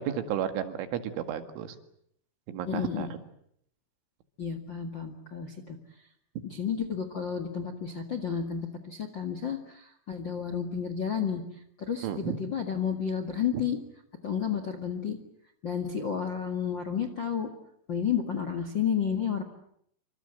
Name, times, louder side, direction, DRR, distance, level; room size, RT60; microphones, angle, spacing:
voice 1, 0.0-1.8 2.5-3.2 6.4-6.5 12.0-12.4, right 9 dB, 75° right, 8 dB, 4.4 m, -33 dB
voice 2, 2.7-3.1 4.4-5.8 6.4-11.4 11.8-13.8 14.2-15.2 15.6-17.5 17.9-19.4, left 7 dB, 90° left, 8 dB, 1.0 m, -31 dB
27.5 x 25.5 x 7.9 m, 0.70 s
omnidirectional pair, 5.7 m